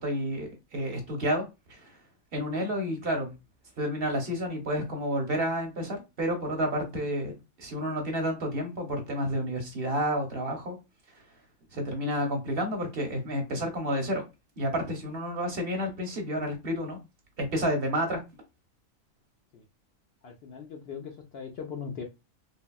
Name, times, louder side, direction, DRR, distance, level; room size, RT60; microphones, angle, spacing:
voice 1, 0.0-1.9 2.3-3.3 3.8-10.8 11.7-14.2 14.6-17.0 17.4-18.2, equal, 55° right, 3 dB, 0.8 m, -30 dB
voice 2, 20.2-22.0, left 6 dB, 65° left, 2 dB, 0.7 m, -39 dB
3.4 x 2.2 x 2.2 m, 0.24 s
omnidirectional pair, 1.4 m